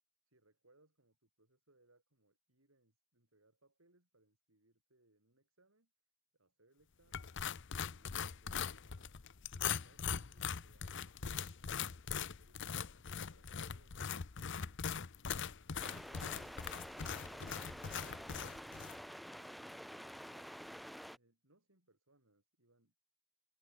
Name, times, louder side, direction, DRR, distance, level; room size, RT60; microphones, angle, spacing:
voice 1, 0.2-5.9 6.3-7.5 7.8-9.2 9.5-14.8 21.1-22.9, right 2 dB, 80° right, 5.5 m, -72 dB
sound 1, 7.1-19.0, left 7 dB, 65° left, 0.8 m, -41 dB
sound 2, 15.8-21.2, equal, ahead, 1.5 m, -49 dB
open air
head